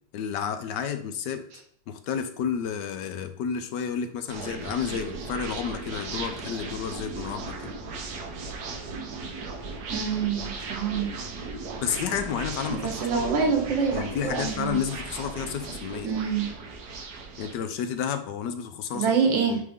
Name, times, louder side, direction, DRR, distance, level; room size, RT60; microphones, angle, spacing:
voice 1, 0.1-1.4 1.9-7.7 11.8-13.3 13.9-16.1 17.4-19.1 19.5-19.6, left 7 dB, 75° left, 9 dB, 1.3 m, -31 dB
sound 1, 4.3-17.5, right 4 dB, 65° right, 1.4 m, -37 dB
voice 2, 9.9-11.1 12.7-14.8 16.0-16.4 18.9-19.6, right 6 dB, 85° right, 3 dB, 2.0 m, -26 dB
9.4 x 3.5 x 3.5 m, 0.64 s
omnidirectional pair, 2.0 m